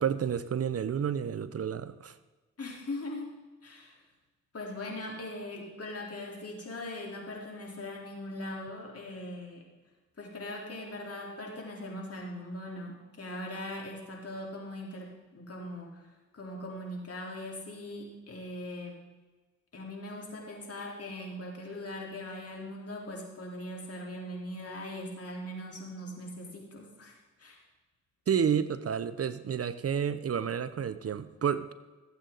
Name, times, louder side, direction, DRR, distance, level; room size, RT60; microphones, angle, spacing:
voice 1, 0.0-2.2 28.3-31.7, right 8 dB, 50° right, 14 dB, 0.7 m, -30 dB
voice 2, 2.6-3.9 4.5-9.6 10.2-19.0 19.7-27.6, left 1 dB, 50° left, -1 dB, 3.7 m, -40 dB
16.5 x 8.3 x 4.0 m, 1.3 s
cardioid pair, 60°, 31 cm